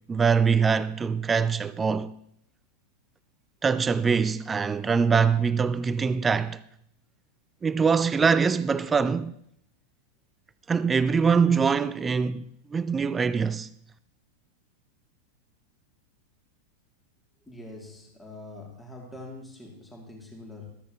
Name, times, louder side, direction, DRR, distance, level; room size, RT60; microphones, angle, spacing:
voice 1, 0.1-2.1 3.6-6.6 7.6-9.3 10.7-13.7, right 5 dB, 15° right, 0.3 m, -23 dB
voice 2, 17.5-20.7, left 2 dB, 5° left, 2.4 m, -44 dB
13.5 x 13.0 x 2.9 m
figure-of-eight pair, 90°, 0 cm